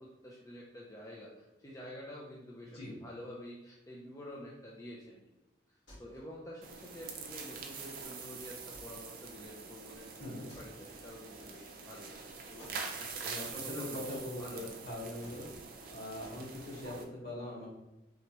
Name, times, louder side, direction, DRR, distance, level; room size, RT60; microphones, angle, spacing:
voice 1, 0.0-5.2 6.0-15.0, left 1 dB, 15° left, -4 dB, 0.4 m, -49 dB
sound 1, 5.9-6.4 8.7-9.2 10.5-11.3 12.6-12.9 13.9-14.5 15.2-15.8 16.2-16.4, left 1 dB, 80° left, 1.5 m, -57 dB
sound 2, 6.6-17.0, right 5 dB, 50° right, 0.5 m, -45 dB
voice 2, 13.2-15.5 15.9-17.7, left 1 dB, 60° left, -5 dB, 1.4 m, -42 dB
3.4 x 3.0 x 2.9 m, 0.97 s
head